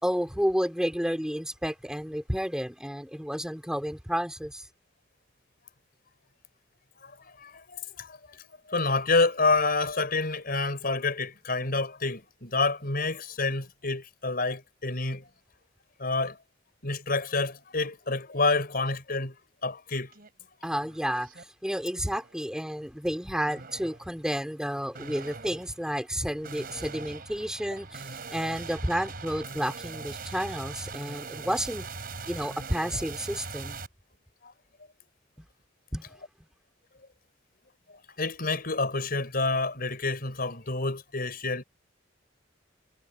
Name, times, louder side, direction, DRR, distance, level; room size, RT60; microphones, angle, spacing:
voice 1, 0.0-4.6 20.6-28.0 28.3-31.9 32.3-33.8 35.9-36.0, equal, 5° right, 4.6 m, -31 dB
voice 2, 7.0-8.4 8.7-15.3 16.0-16.4 16.8-19.3 19.6-20.1 34.4-34.5 38.2-41.6, left 3 dB, 55° left, 5.0 m, -28 dB
sound 1, 20.1-20.3 20.7-21.4 21.9-22.4 23.4-24.1 24.9-33.9, right 4 dB, 55° right, 4.5 m, -41 dB
head